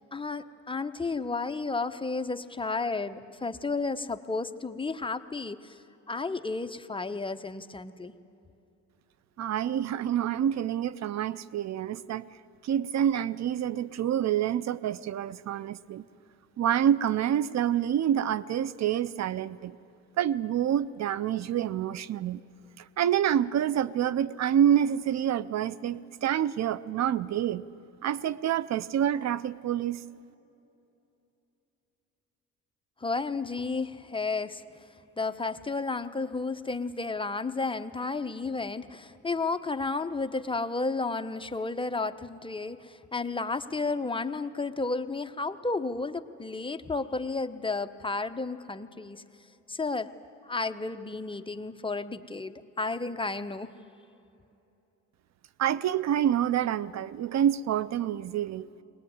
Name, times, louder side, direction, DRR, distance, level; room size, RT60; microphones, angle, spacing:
voice 1, 0.1-5.8 6.1-8.1 33.0-34.6 35.2-49.2 49.7-50.1 50.4-53.7, left 3 dB, 15° left, 9 dB, 0.9 m, -32 dB
voice 2, 9.4-12.3 12.6-16.0 16.6-19.8 20.2-22.4 22.8-27.6 28.0-30.0 55.6-58.7, right 10 dB, 60° right, 19 dB, 0.6 m, -27 dB
21.5 x 19.5 x 9.4 m, 2.9 s
cardioid pair, 90°, 30 cm